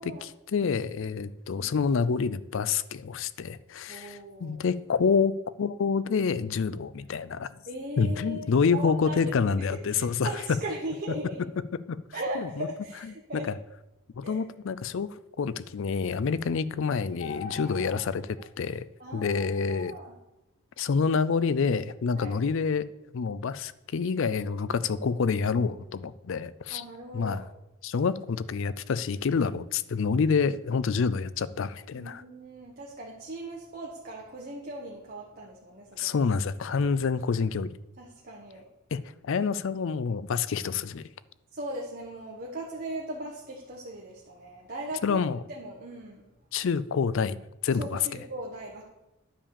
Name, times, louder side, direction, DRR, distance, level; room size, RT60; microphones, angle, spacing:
voice 1, 0.0-7.5 8.0-10.3 11.9-12.0 12.4-12.7 13.3-13.5 14.2-18.8 19.1-19.9 20.8-22.9 23.1-26.8 27.1-27.4 27.8-32.2 36.0-37.7 38.9-41.1 45.0-45.4 46.5-47.4 47.6-48.0, left 5 dB, 60° left, 0.4 m, -27 dB
voice 2, 3.9-4.6 7.7-11.4 12.1-13.5 14.2-14.4 19.0-19.4 19.7-20.2 22.2-22.4 26.7-27.4 31.9-36.2 38.0-38.6 41.5-45.2 45.5-46.2 47.8-48.8, right 1 dB, 40° right, 1.2 m, -38 dB
sound 1, 17.2-18.0 18.4-18.5 19.1-20.0, left 5 dB, 40° left, 1.0 m, -42 dB
10.0 x 4.9 x 7.0 m
head